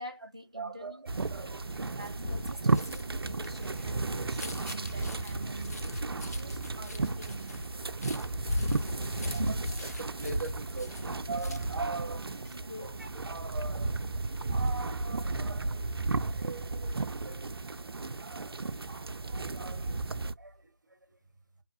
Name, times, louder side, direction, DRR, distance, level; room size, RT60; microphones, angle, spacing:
voice 1, 0.0-1.1 1.7-5.9 6.3-7.9 12.4-13.0, equal, 15° right, 0.4 m, -46 dB
voice 2, 0.5-1.8 9.2-12.4 12.8-14.2 14.5-15.9 16.2-17.5 18.1-20.0 20.4-21.2, right 3 dB, 50° right, 0.8 m, -42 dB
sound 1, 1.1-20.3, right 3 dB, 80° right, 0.4 m, -34 dB
sound 2, 1.7-11.9 12.3-12.6, left 2 dB, 40° left, 0.5 m, -39 dB
4.8 x 2.7 x 2.3 m
figure-of-eight pair, 175°, 13 cm